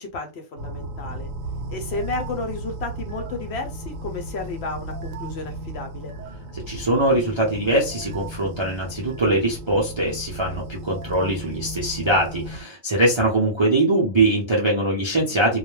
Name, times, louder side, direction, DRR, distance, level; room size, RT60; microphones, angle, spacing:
voice 1, 0.0-1.3 1.7-6.1 15.3-15.4, left 3 dB, 65° left, 4 dB, 0.7 m, -32 dB
sound 1, 0.6-12.6, right 1 dB, 80° right, 1.0 m, -35 dB
voice 2, 6.5-15.6, right 1 dB, 40° right, -3 dB, 0.4 m, -22 dB
2.3 x 2.1 x 3.1 m, 0.28 s
omnidirectional pair, 1.3 m